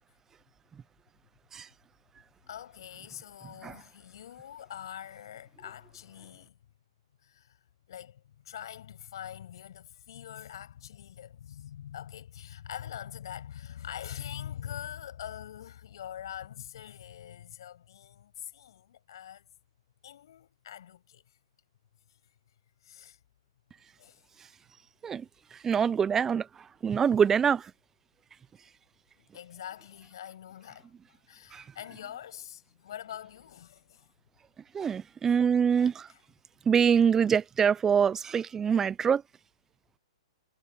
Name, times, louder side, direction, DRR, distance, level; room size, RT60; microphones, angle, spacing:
voice 1, 2.5-6.6 7.2-19.4 20.0-21.4 22.1-22.2 22.8-23.2 24.0-24.2 29.2-34.1 35.3-35.4 36.1-36.2, left 10 dB, 60° left, 7.6 m, -44 dB
voice 2, 25.6-26.5 26.8-27.7 31.5-31.6 34.7-36.1 36.7-39.2, right 7 dB, 15° right, 0.7 m, -24 dB
figure-of-eight pair, 115°, 3 cm